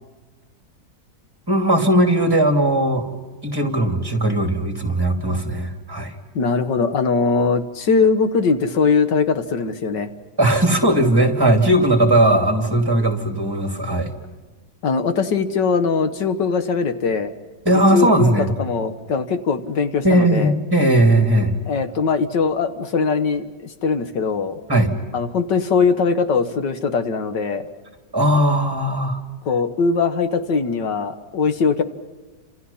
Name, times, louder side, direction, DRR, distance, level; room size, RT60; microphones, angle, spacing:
voice 1, 1.5-3.1 3.4-6.1 10.4-14.1 17.6-18.5 20.0-21.5 24.7-24.9 28.1-29.2, right 1 dB, 15° right, 4 dB, 2.9 m, -18 dB
voice 2, 6.4-10.1 14.8-17.3 17.9-20.5 21.7-24.6 25.1-27.7 29.5-31.8, left 5 dB, 85° left, 8 dB, 2.1 m, -21 dB
30.0 x 27.5 x 5.7 m, 1.3 s
omnidirectional pair, 1.8 m